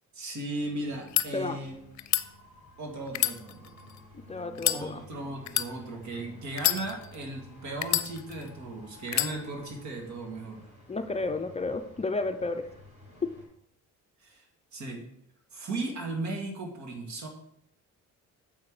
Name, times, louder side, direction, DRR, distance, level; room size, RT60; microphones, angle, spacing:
voice 1, 0.1-1.7 2.8-3.9 4.7-10.7 14.2-14.4 14.7-15.1 15.5-17.3, right 2 dB, 70° right, 1 dB, 2.2 m, -36 dB
sound 1, 0.5-13.5, left 1 dB, 25° right, 2.9 m, -52 dB
sound 2, 0.9-1.3 2.0-2.3 3.1-4.0 4.6-4.8 5.5-5.7 6.5-7.2 7.8-8.5 9.1-9.3, left 14 dB, 65° left, 0.5 m, -27 dB
voice 2, 4.1-5.0 10.9-12.7 13.2-13.4, left 3 dB, 20° left, 7 dB, 0.5 m, -32 dB
7.2 x 5.7 x 4.8 m, 0.74 s
cardioid pair, 90°, 30 cm